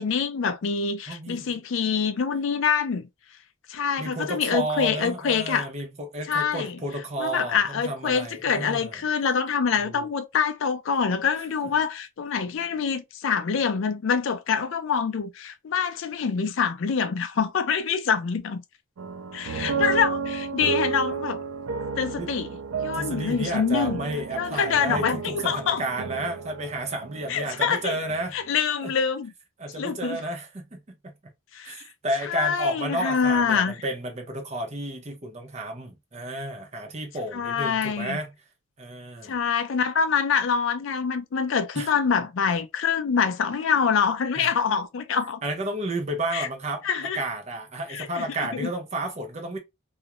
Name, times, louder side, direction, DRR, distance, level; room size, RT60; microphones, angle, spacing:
voice 1, 0.0-3.0 3.7-5.7 6.3-6.8 7.2-18.6 19.3-21.4 22.0-22.5 22.8-24.0 24.4-25.8 27.3-28.0 28.3-29.3 29.8-30.2 31.5-31.8 32.3-33.8 37.3-38.2 39.2-45.4 46.3-46.5 46.8-47.2 47.9-48.2 48.6-48.7, left 6 dB, 60° left, 0.4 m, -25 dB
voice 2, 1.1-1.5 4.0-9.0 9.8-10.1 11.4-11.5 22.2-22.3 22.9-28.4 28.8-28.9 29.6-31.1 31.6-38.3 38.8-39.4 41.7-41.9 44.4-44.5 45.4-49.6, right 1 dB, 30° right, 0.6 m, -32 dB
sound 1, 19.0-28.3, right 5 dB, 85° right, 0.5 m, -32 dB
2.4 x 2.0 x 2.8 m
head